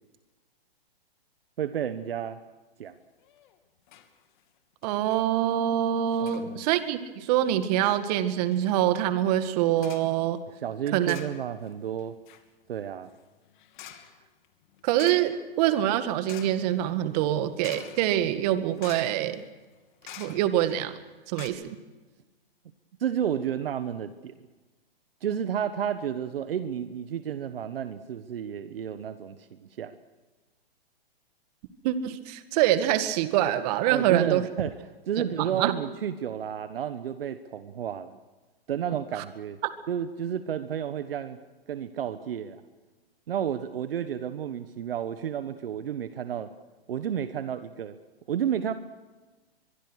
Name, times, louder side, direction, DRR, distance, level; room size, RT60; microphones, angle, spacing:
voice 1, 1.6-2.4 2.8-3.0 6.2-6.6 10.6-12.2 12.7-13.1 23.0-24.4 25.2-30.0 33.9-34.7 35.1-38.2 38.7-39.6 39.9-41.4 41.7-42.6 43.3-46.5 46.9-48.0 48.3-48.7, right 9 dB, 70° right, 11 dB, 1.4 m, -31 dB
sound 1, 3.2-3.6 3.9-4.1 4.4-4.5 4.8-5.2 6.1-6.5 7.2-7.6 8.1-8.2 8.5-8.7 9.8-10.2 11.0-11.7 12.0-20.7 21.1-21.2 21.3-21.5, left 10 dB, 50° left, 2.8 m, -48 dB
voice 2, 4.8-10.4 10.9-11.2 14.8-19.4 20.2-21.0 21.3-21.8 31.8-34.4 35.4-35.7 39.2-39.3 39.6-39.7, right 12 dB, 40° right, 10 dB, 2.0 m, -25 dB
23.5 x 23.0 x 6.5 m, 1.2 s
hypercardioid pair, 130°, 30 cm